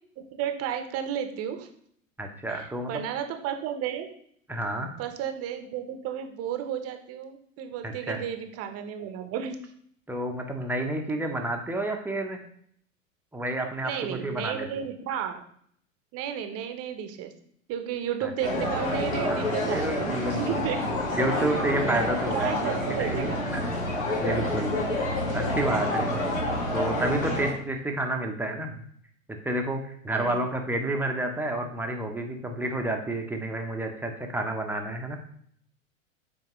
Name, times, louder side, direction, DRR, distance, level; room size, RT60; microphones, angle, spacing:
voice 1, 0.2-1.7 2.5-4.1 5.0-9.6 13.8-15.4 16.1-17.3 17.7-21.0 22.3-23.5 25.2-25.4 30.1-30.4, right 9 dB, 35° right, 7 dB, 1.0 m, -33 dB
voice 2, 2.2-3.0 4.5-4.9 7.8-8.2 10.1-12.4 13.3-14.8 18.2-18.3 19.3-20.6 21.2-24.7 25.3-26.3 26.7-28.8 29.4-35.2, right 1 dB, 5° right, 3 dB, 1.0 m, -30 dB
sound 1, 18.4-27.5, left 1 dB, 80° left, 2.0 m, -28 dB
8.6 x 4.5 x 3.1 m, 0.63 s
figure-of-eight pair, 90°, 40 cm